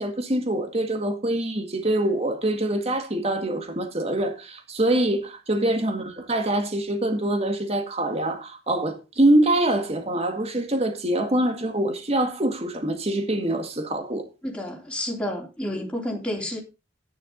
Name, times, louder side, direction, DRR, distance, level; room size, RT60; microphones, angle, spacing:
voice 1, 0.0-14.3, right 1 dB, 35° right, 2.0 m, -24 dB
voice 2, 14.4-16.6, left 1 dB, 5° left, 3.4 m, -30 dB
11.5 x 10.0 x 3.9 m
head